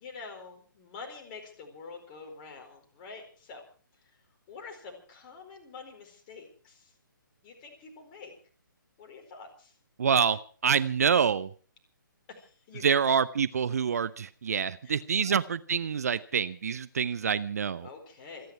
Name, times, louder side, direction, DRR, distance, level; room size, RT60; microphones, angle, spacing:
voice 1, 0.0-3.6 4.0-4.2 4.5-6.9 7.4-8.3 9.0-9.7 12.3-13.1 14.8-15.4 17.8-18.5, left 4 dB, 25° left, 3 dB, 4.6 m, -46 dB
voice 2, 10.0-11.5 12.8-17.9, right 7 dB, 45° right, 15 dB, 0.8 m, -26 dB
27.5 x 10.5 x 4.7 m, 0.40 s
figure-of-eight pair, 140°, 11 cm